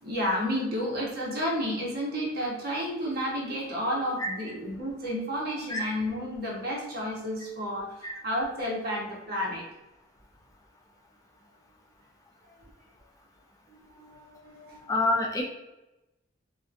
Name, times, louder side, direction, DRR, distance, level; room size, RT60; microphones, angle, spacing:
voice 1, 0.0-9.7 12.5-12.6 13.7-14.9, equal, 55° right, -2 dB, 0.8 m, -31 dB
voice 2, 14.9-15.4, left 2 dB, 20° left, 0 dB, 0.3 m, -26 dB
2.7 x 2.1 x 2.4 m, 0.97 s
head